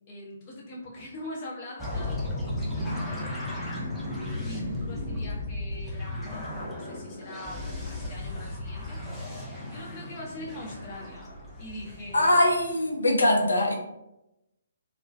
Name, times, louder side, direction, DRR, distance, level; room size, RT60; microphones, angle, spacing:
voice 1, 0.1-3.8 4.4-9.0 9.7-11.3 11.6-12.4, left 1 dB, 30° left, -4 dB, 0.8 m, -42 dB
sound 1, 1.8-12.9, left 1 dB, 5° left, 0.5 m, -35 dB
voice 2, 12.1-13.7, left 1 dB, 70° left, 0 dB, 0.5 m, -22 dB
2.3 x 2.1 x 2.5 m, 0.89 s
figure-of-eight pair, 135°, 0 cm